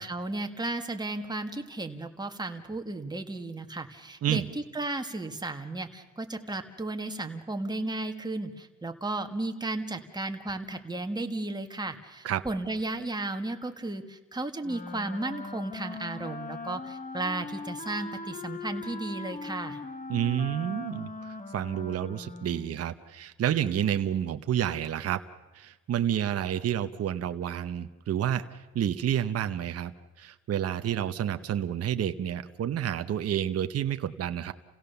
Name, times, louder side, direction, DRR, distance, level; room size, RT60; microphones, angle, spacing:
voice 1, 0.0-4.4 4.7-19.8, right 2 dB, 15° right, 5 dB, 1.9 m, -34 dB
Wind instrument woodwind instrument, 14.6-22.9, left 3 dB, 25° left, 1.7 m, -40 dB
voice 2, 20.1-25.2 25.5-29.9 30.2-34.5, right 10 dB, 55° right, 9 dB, 0.9 m, -29 dB
29.0 x 16.5 x 6.9 m, 1.2 s
cardioid pair, 90°, 30 cm